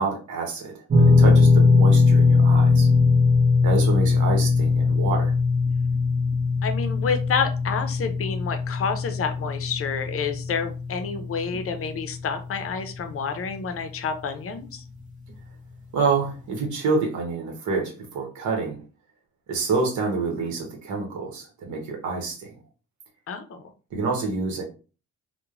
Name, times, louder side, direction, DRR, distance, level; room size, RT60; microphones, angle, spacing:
voice 1, 0.0-2.9 3.6-5.3 15.9-18.8 19.5-22.5 23.9-24.6, right 4 dB, 70° right, 1 dB, 1.0 m, -27 dB
sound 1, 0.9-13.1 13.4-13.6 15.3-15.4, left 4 dB, 25° right, 1.0 m, -20 dB
voice 2, 6.6-14.8 23.3-23.6, left 6 dB, 50° left, 8 dB, 0.6 m, -29 dB
3.0 x 2.1 x 2.4 m, 0.35 s
cardioid pair, 90°, 30 cm